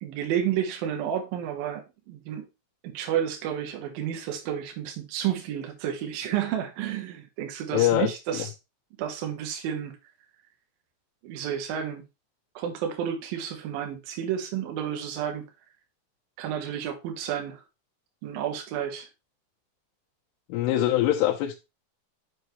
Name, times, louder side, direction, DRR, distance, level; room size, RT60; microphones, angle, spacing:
voice 1, 0.0-2.5 2.8-8.5 9.0-10.0 11.2-12.0 12.6-15.5 16.4-17.6 18.2-19.1, right 9 dB, 70° right, 2.3 m, -31 dB
voice 2, 7.7-8.1 20.5-21.6, left 13 dB, 80° left, 3.1 m, -23 dB
6.9 x 6.6 x 3.1 m
omnidirectional pair, 5.9 m